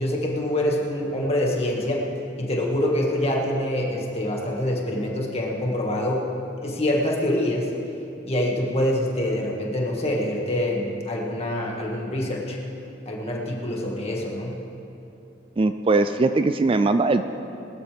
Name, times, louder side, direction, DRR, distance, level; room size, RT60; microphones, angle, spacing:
voice 1, 0.0-2.1 2.4-6.3 6.6-7.7 8.3-12.6 13.1-14.6, left 1 dB, 35° left, -2 dB, 2.0 m, -25 dB
voice 2, 15.6-17.2, right 3 dB, 30° right, 10 dB, 0.4 m, -20 dB
20.0 x 13.0 x 3.5 m, 2.7 s
head